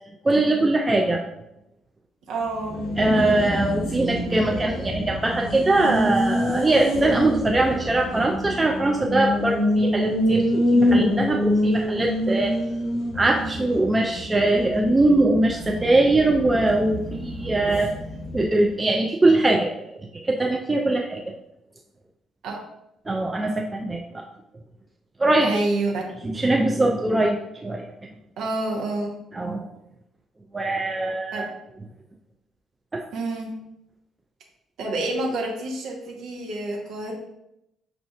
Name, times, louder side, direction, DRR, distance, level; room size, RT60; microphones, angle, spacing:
voice 1, 0.2-1.2 3.0-12.6 13.1-17.9 18.3-19.9 20.2-21.2 23.1-24.2 25.2-25.5 26.2-27.9 29.3-29.6 30.5-31.5 32.9-33.0, right 2 dB, 20° right, 1 dB, 0.4 m, -22 dB
voice 2, 2.3-2.8 22.4-22.6 25.4-26.0 28.4-29.2 31.3-31.5 33.1-33.6 34.8-37.1, right 2 dB, 60° right, -1 dB, 0.8 m, -28 dB
Race car auto racing, 2.4-18.7, equal, 55° left, 1.0 m, -26 dB
5.9 x 2.5 x 2.3 m, 0.83 s
figure-of-eight pair, 45°, 0 cm